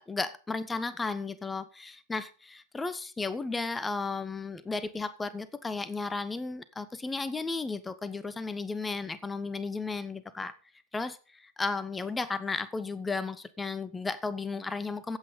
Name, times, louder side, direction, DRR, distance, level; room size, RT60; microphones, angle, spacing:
voice 1, 0.0-10.5 10.9-15.2, left 3 dB, 10° left, 1.0 m, -34 dB
14.5 x 8.7 x 5.3 m
figure-of-eight pair, 90°, 0 cm